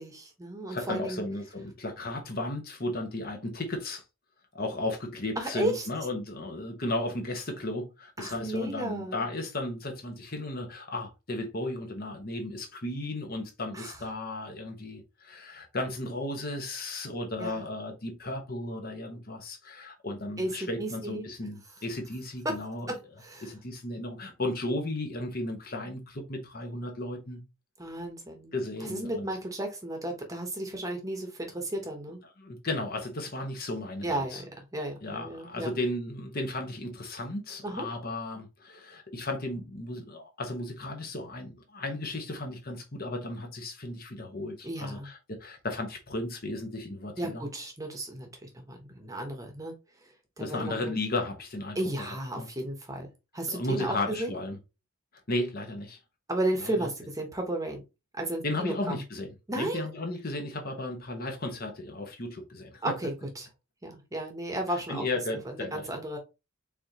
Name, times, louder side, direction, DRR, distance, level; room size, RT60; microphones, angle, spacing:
voice 1, 0.0-1.2 5.4-5.9 8.2-9.2 13.7-14.0 17.4-17.7 20.4-21.2 22.4-22.6 22.9-23.5 27.8-28.5 28.9-32.2 34.0-34.4 34.7-35.8 37.6-37.9 44.6-45.1 47.2-49.7 50.4-50.9 51.7-53.1 53.3-54.3 56.3-57.8 58.1-59.0 59.5-59.9 62.8-63.5 63.8-65.0 65.4-66.2, right 1 dB, 15° right, 1.0 m, -33 dB
voice 2, 0.7-4.0 4.5-22.9 23.4-27.4 28.5-29.3 32.4-34.4 35.0-47.4 50.4-52.1 52.4-52.5 53.5-54.6 55.3-56.0 56.6-56.9 58.4-62.8 64.7-65.9, left 2 dB, 45° left, 1.1 m, -35 dB
4.8 x 3.7 x 2.9 m
head